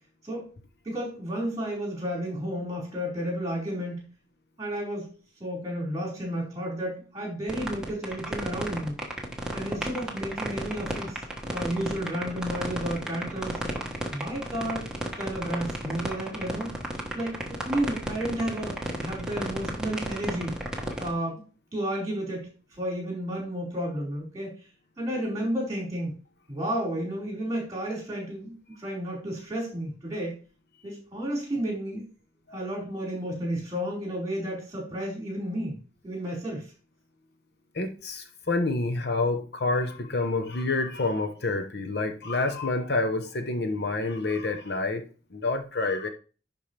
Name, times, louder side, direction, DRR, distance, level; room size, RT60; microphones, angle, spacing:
voice 1, 0.8-4.1 4.6-5.1 5.4-8.9 9.5-13.6 14.1-14.9 15.2-16.7 17.1-20.6 21.0-21.4 21.7-22.5 22.8-24.5 25.0-26.1 26.5-30.3 30.8-32.0 32.5-35.8 36.0-36.6, right 1 dB, 20° right, -3 dB, 4.7 m, -32 dB
sound 1, 7.5-21.1, right 1 dB, 5° right, 1.2 m, -32 dB
voice 2, 37.7-45.0 45.3-46.1, left 3 dB, 65° left, 6 dB, 0.9 m, -28 dB
11.0 x 4.5 x 3.3 m, 0.36 s
head